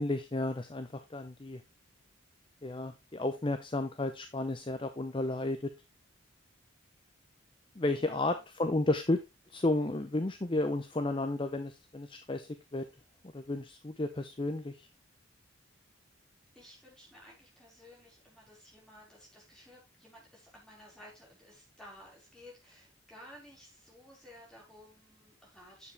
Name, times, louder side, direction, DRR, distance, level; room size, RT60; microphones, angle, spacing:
voice 1, 0.0-1.6 2.6-5.7 7.8-9.2 9.5-12.8 13.3-14.9, left 2 dB, 25° left, 9 dB, 0.6 m, -32 dB
voice 2, 7.9-8.5 16.5-25.9, left 1 dB, 5° left, -4 dB, 4.6 m, -55 dB
9.6 x 7.2 x 3.3 m, 0.24 s
head